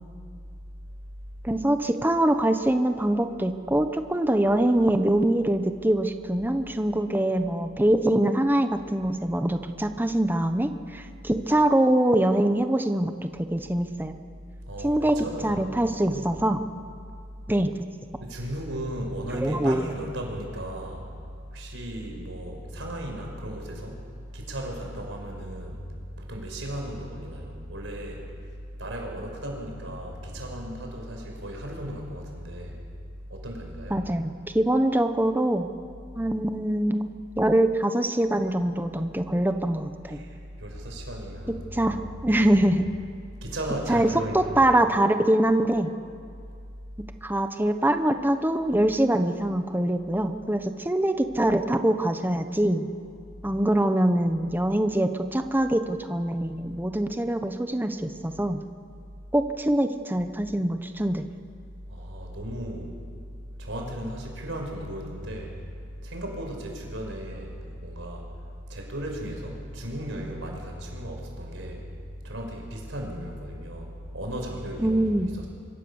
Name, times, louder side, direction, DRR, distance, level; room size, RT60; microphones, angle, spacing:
voice 1, 1.4-14.1 14.8-16.6 17.5-17.7 19.3-19.8 33.9-35.7 36.2-37.1 37.4-40.2 41.5-42.0 42.2-42.8 43.9-45.9 47.2-52.9 53.4-58.6 59.3-61.3 74.8-75.3, right 1 dB, 10° right, 8 dB, 1.0 m, -24 dB
voice 2, 14.7-16.4 18.2-21.1 21.5-24.0 24.3-25.8 26.2-28.3 28.8-32.8 33.3-34.1 40.0-42.6 43.4-44.7 61.9-62.9 63.6-68.3 68.7-71.8 72.2-75.5, right 1 dB, 70° right, 1 dB, 5.7 m, -36 dB
26.0 x 24.5 x 7.2 m, 2.3 s
head